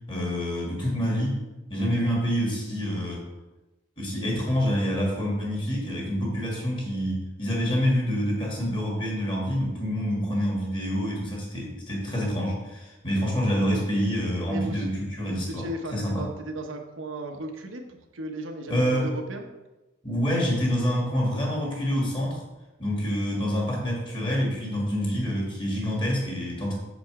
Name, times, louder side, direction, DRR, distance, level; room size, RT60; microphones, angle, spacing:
voice 1, 0.1-1.4 1.7-3.2 4.0-15.6 15.9-16.3 18.7-19.1 20.0-22.4 22.8-26.7, equal, 25° left, -2 dB, 1.9 m, -27 dB
voice 2, 14.4-14.9 15.3-19.5, right 1 dB, 85° right, 3 dB, 1.0 m, -36 dB
6.9 x 5.1 x 4.8 m, 1.1 s
head